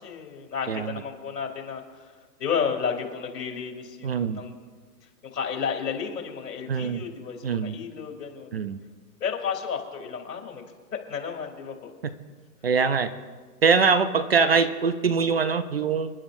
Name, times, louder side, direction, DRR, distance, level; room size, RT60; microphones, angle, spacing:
voice 1, 0.0-2.1 2.4-4.5 5.2-8.5 9.2-10.6 11.1-11.9, left 6 dB, 80° left, 2 dB, 3.3 m, -32 dB
voice 2, 0.7-1.0 4.0-4.4 6.7-7.0 7.4-7.8 8.5-8.8 12.6-13.1 13.6-16.1, right 5 dB, 40° right, 12 dB, 0.5 m, -23 dB
28.0 x 11.0 x 2.6 m, 1.5 s
hypercardioid pair, 170°, 47 cm